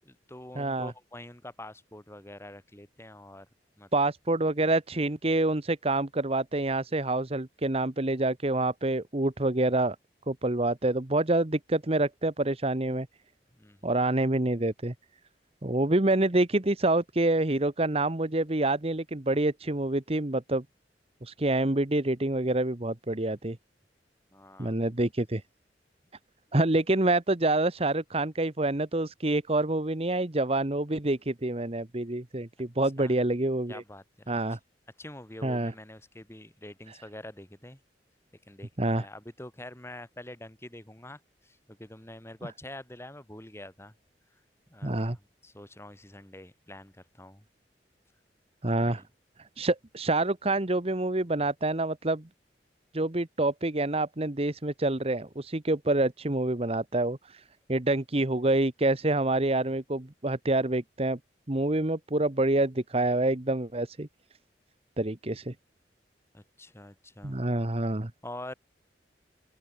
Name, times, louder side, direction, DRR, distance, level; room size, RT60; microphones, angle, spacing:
voice 1, 0.0-3.5 3.8-3.9 13.6-14.0 24.3-24.8 33.0-33.2 33.7-34.6 35.0-37.8 38.5-43.9 44.7-47.4 48.8-49.1 66.3-67.4 68.2-68.5, left 1 dB, 15° left, 3.4 m, -46 dB
voice 2, 0.5-0.9 3.9-10.0 10.3-13.1 13.8-14.9 15.6-20.6 21.2-23.6 24.6-25.4 26.5-33.8 34.3-34.6 35.4-35.7 38.8-39.0 44.8-45.2 48.6-49.0 49.6-52.3 52.9-57.2 57.7-61.2 61.5-64.1 65.0-65.5 67.2-68.1, right 2 dB, 35° right, 1.3 m, -27 dB
open air
head